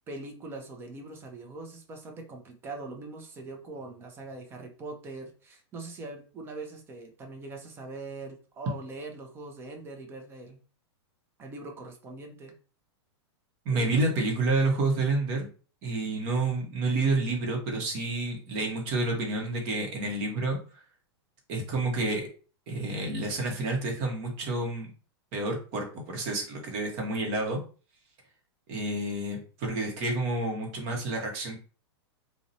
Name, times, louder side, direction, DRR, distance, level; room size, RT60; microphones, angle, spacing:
voice 1, 0.0-10.6 11.4-12.5 13.7-14.0, right 3 dB, 15° right, 3 dB, 0.4 m, -42 dB
voice 2, 13.6-15.5 15.8-20.6 21.5-22.3 22.7-24.9 25.3-27.6 28.7-31.6, right 2 dB, 40° right, 2 dB, 0.8 m, -29 dB
2.5 x 2.0 x 2.7 m, 0.38 s
hypercardioid pair, 150°, 14 cm